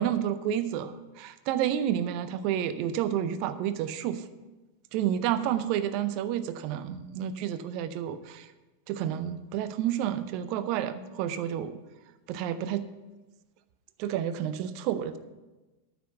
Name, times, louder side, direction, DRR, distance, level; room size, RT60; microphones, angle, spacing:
voice 1, 0.0-4.2 4.9-8.5 8.9-11.8 12.3-12.9 14.0-15.2, right 10 dB, 45° right, 12 dB, 0.6 m, -30 dB
9.4 x 6.0 x 8.1 m, 1.1 s
figure-of-eight pair, 90°, 0 cm